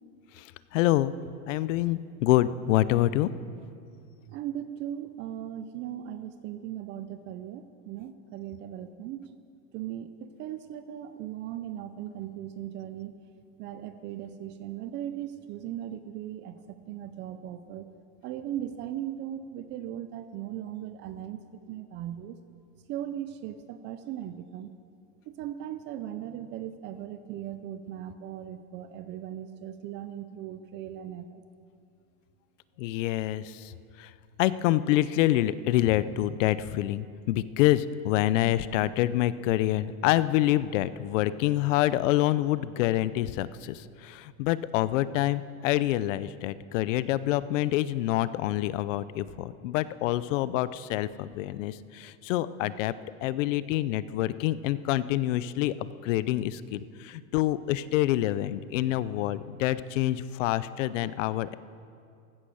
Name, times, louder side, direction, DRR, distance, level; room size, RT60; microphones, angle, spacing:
voice 1, 0.4-1.2 1.5-3.3 32.8-33.7 34.0-34.1 34.4-52.9 53.2-61.5, left 14 dB, 65° left, 16 dB, 0.7 m, -27 dB
voice 2, 4.3-9.2 9.7-13.1 13.6-17.9 18.2-21.4 21.7-22.4 22.9-24.7 25.3-31.4, right 11 dB, 30° right, 10 dB, 0.4 m, -38 dB
15.5 x 13.5 x 6.4 m, 2.4 s
supercardioid pair, 150°, 41 cm